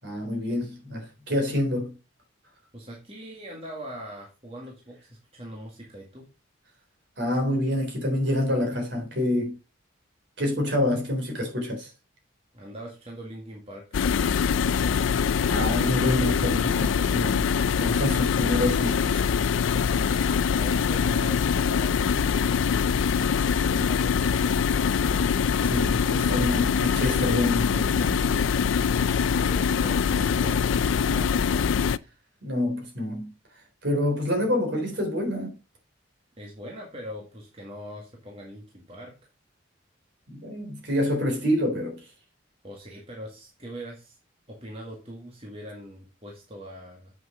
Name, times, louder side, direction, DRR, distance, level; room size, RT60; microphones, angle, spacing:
voice 1, 0.0-1.9 7.2-9.6 10.4-11.9 15.5-19.2 25.6-28.5 32.4-33.3 33.8-35.6 40.3-42.1, left 1 dB, 60° right, 3.6 m, -27 dB
voice 2, 2.7-6.3 12.5-14.0 19.9-22.7 23.5-25.3 29.3-31.6 36.4-39.1 42.6-44.2 44.5-47.1, equal, 30° right, 1.9 m, -42 dB
sound 1, 13.9-32.0, left 6 dB, 75° left, 0.4 m, -23 dB
7.8 x 6.2 x 5.0 m
head